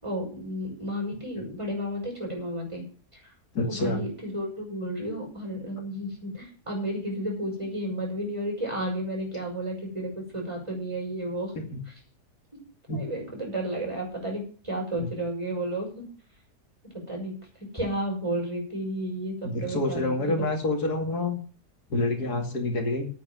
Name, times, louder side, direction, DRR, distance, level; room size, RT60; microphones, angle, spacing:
voice 1, 0.0-2.8 3.1-3.3 3.6-11.5 12.9-16.1 16.9-17.5 17.7-20.4, right 1 dB, 20° right, -1 dB, 6.1 m, -32 dB
voice 2, 3.5-4.1 11.5-11.8 12.9-13.0 15.0-15.1 19.5-21.4 21.9-23.1, left 2 dB, 75° left, 3 dB, 3.0 m, -27 dB
9.1 x 8.8 x 9.1 m, 0.42 s
omnidirectional pair, 1.7 m